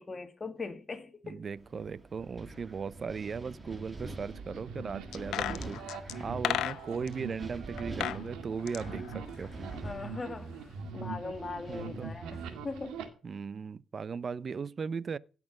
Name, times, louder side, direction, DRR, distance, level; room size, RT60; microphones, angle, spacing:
voice 1, 0.0-1.4 5.2-5.5 9.8-13.0, left 3 dB, 30° left, 2.2 m, -41 dB
voice 2, 1.2-5.8 6.2-9.5 11.7-12.1 13.2-15.2, right 5 dB, 40° right, 0.5 m, -37 dB
Wind, 1.6-13.1, right 2 dB, 20° right, 2.2 m, -46 dB
sound 1, 4.1-13.0, right 5 dB, 90° right, 2.1 m, -43 dB
sound 2, 5.1-7.1 7.8-8.2 8.5-9.9 10.2-10.3, left 12 dB, 80° left, 0.7 m, -34 dB
16.5 x 6.1 x 6.5 m
cardioid pair, 90°, 0 cm